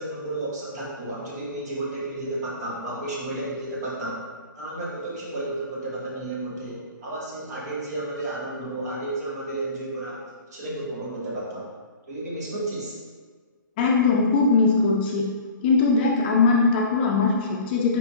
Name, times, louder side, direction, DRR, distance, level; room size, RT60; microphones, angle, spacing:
voice 1, 0.0-4.2 4.6-10.2 10.5-11.7 12.1-12.9, right 2 dB, 55° right, -5 dB, 1.5 m, -32 dB
voice 2, 13.8-15.2 15.6-18.0, left 4 dB, 30° left, -1 dB, 0.5 m, -20 dB
4.4 x 3.3 x 2.8 m, 1.5 s
hypercardioid pair, 140°, 11 cm